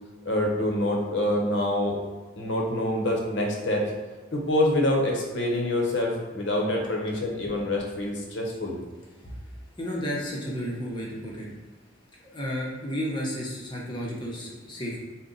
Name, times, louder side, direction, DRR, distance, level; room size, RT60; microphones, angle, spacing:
voice 1, 0.2-2.0 2.4-3.9 4.3-8.8, left 1 dB, 75° left, -1 dB, 0.8 m, -26 dB
voice 2, 9.8-11.5 12.2-15.0, equal, 25° left, -4 dB, 0.7 m, -32 dB
4.0 x 2.1 x 3.8 m, 1.3 s
head